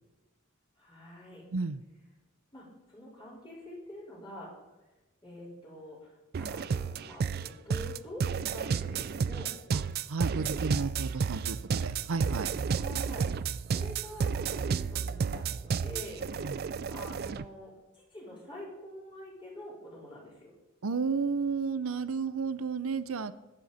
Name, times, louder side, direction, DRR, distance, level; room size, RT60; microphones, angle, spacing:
voice 1, 0.8-1.4 2.5-4.5 5.2-9.5 12.7-13.3 13.7-16.3 16.9-20.5, left 1 dB, 25° left, -6 dB, 4.6 m, -46 dB
sound 1, 6.3-17.5, right 6 dB, 50° right, 0.4 m, -32 dB
voice 2, 10.1-12.5 16.4-16.6 20.8-23.3, right 4 dB, 90° right, 14 dB, 0.6 m, -32 dB
21.0 x 7.9 x 4.2 m, 1.1 s
head